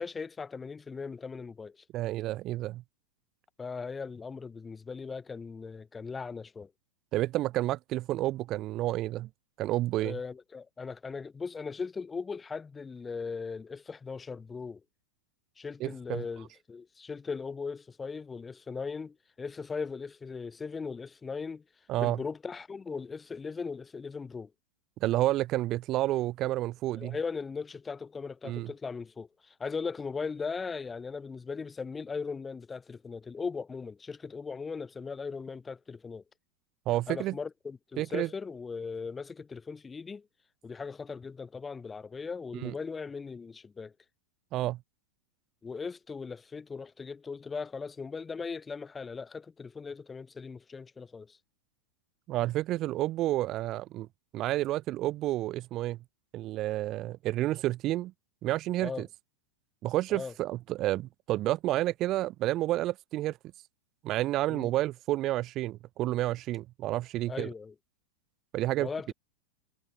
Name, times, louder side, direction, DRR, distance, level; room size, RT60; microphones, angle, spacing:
voice 1, 0.0-1.8 3.6-6.7 10.0-14.8 15.6-21.6 22.0-24.5 27.0-36.2 37.1-40.3 40.6-43.9 45.6-51.4 58.8-59.1 60.1-60.3 64.5-64.7 67.3-67.7 68.8-69.1, left 5 dB, 15° left, 0.8 m, -38 dB
voice 2, 1.9-2.8 7.1-9.3 9.6-10.2 15.8-16.2 21.9-22.2 25.0-27.2 28.4-28.7 36.9-37.4 38.0-38.3 42.6-42.7 44.5-44.8 52.3-54.1 54.3-56.0 56.3-58.1 58.4-59.1 59.8-63.4 64.0-67.5 68.5-68.9, right 15 dB, 35° right, 0.7 m, -30 dB
figure-of-eight pair, 90°, 0 cm